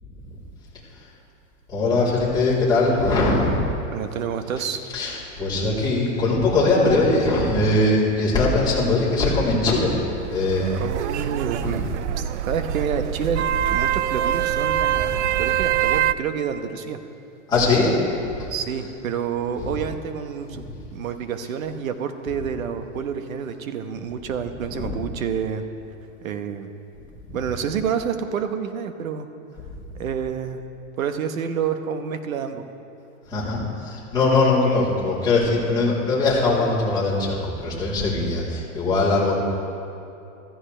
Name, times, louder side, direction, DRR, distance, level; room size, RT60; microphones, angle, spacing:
voice 1, 1.7-3.7 4.9-10.0 10.3-10.8 11.6-11.9 15.1-15.3 17.5-18.0 18.2-18.5 19.6-19.7 24.7-24.9 33.3-39.4, left 2 dB, 10° left, -9 dB, 3.7 m, -21 dB
voice 2, 3.9-4.8 10.7-11.9 12.2-13.4 13.7-17.0 18.5-20.6 20.9-25.6 26.2-26.7 27.3-29.3 29.9-30.6 31.0-32.6, right 7 dB, 80° right, 8 dB, 1.2 m, -28 dB
sound 1, 10.1-16.1, right 11 dB, 60° right, 0.5 m, -24 dB
15.0 x 14.5 x 3.4 m, 2.7 s
supercardioid pair, 155°, 40 cm